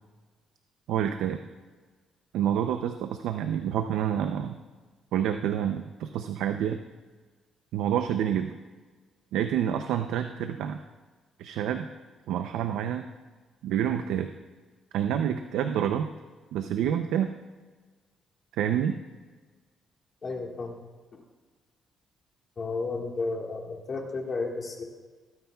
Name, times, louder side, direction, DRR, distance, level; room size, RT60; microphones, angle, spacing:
voice 1, 0.9-1.4 2.3-4.6 5.1-6.8 7.7-8.6 9.3-10.8 11.4-11.9 12.3-13.1 13.6-14.3 14.9-16.1 16.5-17.3 18.5-19.0, right 9 dB, 90° right, 7 dB, 0.5 m, -28 dB
voice 2, 20.2-20.7 22.6-24.8, left 3 dB, 45° left, 1 dB, 1.5 m, -32 dB
21.5 x 9.3 x 2.3 m, 1.4 s
cardioid pair, 90°, 0 cm